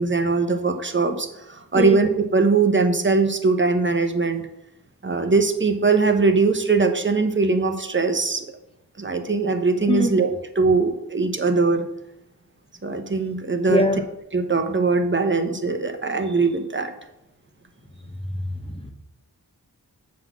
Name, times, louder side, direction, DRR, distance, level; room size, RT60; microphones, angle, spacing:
voice 1, 0.0-4.5 5.0-8.5 9.0-11.9 12.8-13.8 14.3-16.9, right 4 dB, 30° right, 6 dB, 0.9 m, -21 dB
voice 2, 13.7-14.0 18.7-18.9, left 1 dB, 15° left, 4 dB, 0.9 m, -21 dB
7.5 x 4.0 x 6.1 m, 0.89 s
wide cardioid pair, 60°, 37 cm